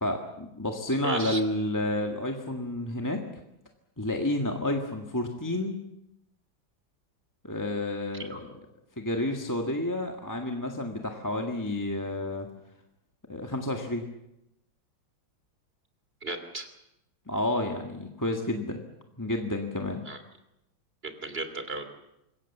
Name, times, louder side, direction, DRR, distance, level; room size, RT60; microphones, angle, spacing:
voice 1, 0.0-3.2 4.0-5.8 7.4-8.5 9.0-12.5 13.3-14.1 17.3-18.8 19.2-20.0, left 1 dB, 10° left, 2 dB, 1.7 m, -30 dB
voice 2, 1.0-1.4 8.3-8.4 16.2-16.7 20.0-20.2 21.0-21.8, right 2 dB, 30° right, 8 dB, 3.0 m, -34 dB
26.5 x 21.5 x 7.3 m, 0.89 s
omnidirectional pair, 2.2 m